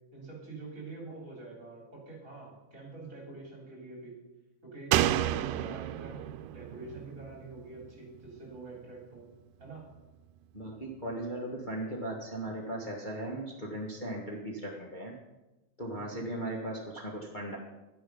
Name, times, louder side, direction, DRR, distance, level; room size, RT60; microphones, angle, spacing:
voice 1, 0.1-4.2 4.6-6.2 6.5-9.3 9.6-9.9 15.9-16.3, right 3 dB, 25° right, -2 dB, 3.9 m, -46 dB
Slam, 4.9-8.4 8.7-8.8, right 12 dB, 90° right, 2.1 m, -31 dB
voice 2, 10.5-15.1 15.8-17.6, right 1 dB, 55° left, -2 dB, 0.5 m, -37 dB
12.0 x 10.5 x 5.5 m, 1.1 s
omnidirectional pair, 3.7 m